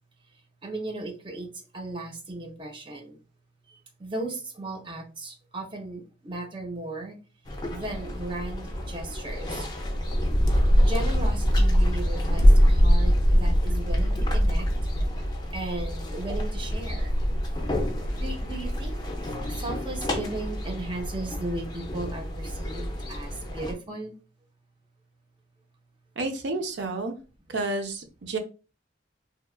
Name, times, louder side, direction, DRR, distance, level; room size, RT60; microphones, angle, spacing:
voice 1, 0.6-1.5 1.7-3.2 3.7-7.2 7.7-9.7 10.8-14.7 15.5-17.2 18.2-19.0 19.5-24.1, right 2 dB, 25° right, 2 dB, 0.5 m, -36 dB
sound 1, 7.5-23.7, equal, 25° left, 0.4 m, -24 dB
voice 2, 26.2-27.2 27.5-28.4, right 2 dB, 75° right, 6 dB, 0.5 m, -30 dB
2.8 x 2.3 x 2.3 m, 0.33 s
head